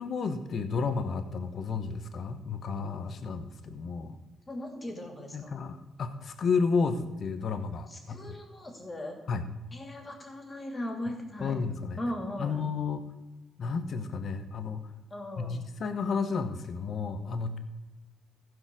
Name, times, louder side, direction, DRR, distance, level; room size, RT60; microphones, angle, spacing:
voice 1, 0.0-4.2 5.3-8.3 9.3-9.4 11.4-12.0 12.4-13.0 13.6-14.9 15.4-17.6, left 5 dB, 55° left, 9 dB, 1.1 m, -32 dB
voice 2, 4.5-5.6 7.9-9.2 9.7-11.5 12.0-12.6 15.1-15.6, left 1 dB, 25° left, 3 dB, 2.8 m, -38 dB
15.5 x 5.3 x 6.3 m, 1.1 s
cardioid pair, 90°, 0 cm